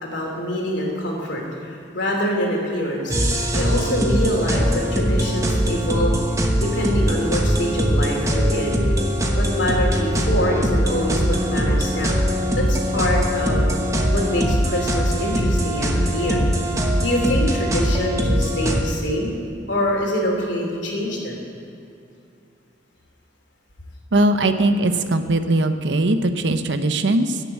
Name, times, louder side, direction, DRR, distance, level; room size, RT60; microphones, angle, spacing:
voice 1, 0.0-6.2 6.5-8.7 9.3-12.2 12.5-13.7 14.1-16.4 17.0-19.3 19.7-21.4, equal, 70° left, 0 dB, 3.0 m, -25 dB
sound 1, 3.1-18.8, equal, 15° right, 1.1 m, -21 dB
voice 2, 24.1-27.4, right 2 dB, 65° right, 9 dB, 0.8 m, -20 dB
16.0 x 6.8 x 8.2 m, 2.5 s
head